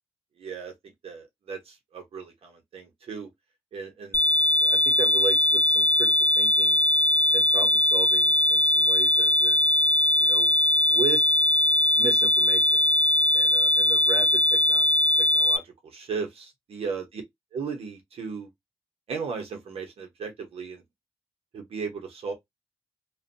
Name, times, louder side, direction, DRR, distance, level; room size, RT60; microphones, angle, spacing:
voice 1, 0.4-3.3 3.7-4.2 4.6-6.8 7.3-9.7 10.2-10.6 10.9-11.2 12.0-12.9 13.3-14.9 15.2-17.2 17.5-18.5 19.1-20.8 21.5-22.3, right 5 dB, 70° right, 1.1 m, -36 dB
sound 1, 4.1-15.6, left 1 dB, 20° left, 0.5 m, -21 dB
2.6 x 2.5 x 2.6 m
cardioid pair, 65°, 10 cm